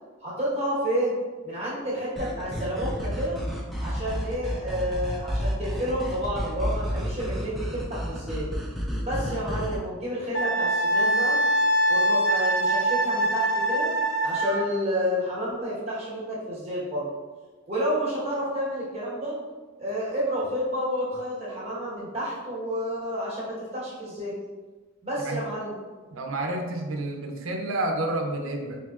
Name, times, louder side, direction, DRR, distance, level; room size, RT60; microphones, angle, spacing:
voice 1, 0.2-1.1 1.4-3.4 3.8-8.5 9.0-11.4 11.9-13.9 14.2-17.1 17.7-19.4 19.8-24.3 25.0-25.7, equal, 30° right, -7 dB, 1.1 m, -30 dB
sound 1, 2.2-9.8, equal, ahead, 0.3 m, -31 dB
Wind instrument woodwind instrument, 10.3-14.7, right 1 dB, 80° left, 0.8 m, -23 dB
voice 2, 26.1-28.8, right 2 dB, 80° right, 2 dB, 0.5 m, -29 dB
4.6 x 2.7 x 2.3 m, 1.3 s
head